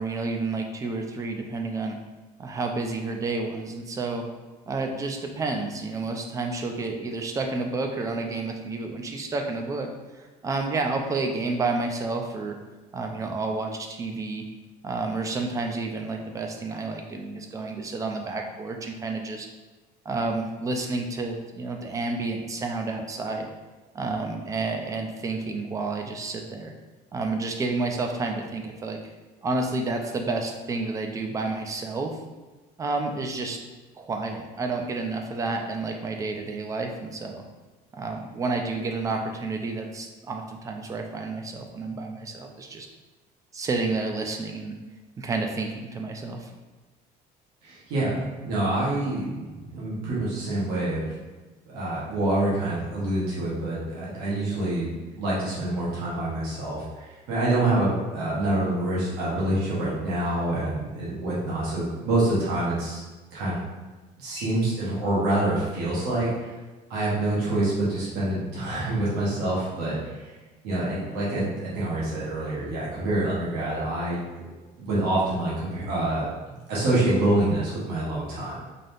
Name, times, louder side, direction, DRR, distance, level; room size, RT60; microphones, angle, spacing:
voice 1, 0.0-2.0 2.4-4.2 4.7-9.9 10.2-12.6 12.9-14.4 14.8-19.5 20.1-23.5 23.9-26.7 27.1-29.0 29.4-32.1 32.8-33.6 34.0-37.4 37.9-42.9 43.5-44.7 45.2-46.5, right 3 dB, 20° right, 3 dB, 0.4 m, -30 dB
voice 2, 47.6-51.2 51.7-54.9 55.2-63.0 63.3-63.6 64.2-66.5 66.9-70.3 70.6-74.5 74.9-78.6, right 1 dB, 75° right, -7 dB, 1.4 m, -26 dB
3.9 x 2.7 x 3.4 m, 1.2 s
cardioid pair, 160°, 17 cm